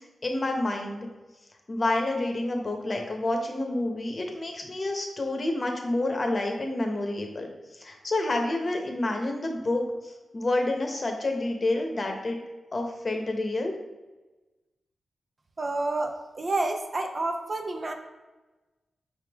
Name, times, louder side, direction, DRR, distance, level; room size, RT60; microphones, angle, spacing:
voice 1, 0.2-1.1 1.7-12.4 12.7-13.7, left 2 dB, 40° left, 3 dB, 0.9 m, -29 dB
voice 2, 15.6-17.9, right 2 dB, 45° right, 4 dB, 0.6 m, -29 dB
4.6 x 3.3 x 3.5 m, 1.2 s
cardioid pair, 70°, 0 cm